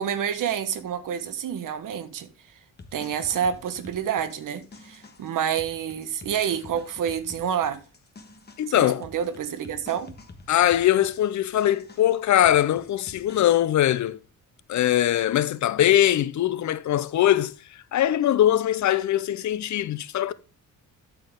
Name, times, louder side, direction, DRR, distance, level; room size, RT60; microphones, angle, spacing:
voice 1, 0.0-2.3 2.9-7.8 8.7-10.1, right 8 dB, 70° right, 1.2 m, -28 dB
sound 1, 2.8-13.4, left 3 dB, 30° left, 1.4 m, -49 dB
voice 2, 8.6-9.0 10.5-14.2 14.7-17.5 17.9-20.3, left 12 dB, 55° left, 0.6 m, -21 dB
12.0 x 4.8 x 3.6 m
cardioid pair, 105°, 33 cm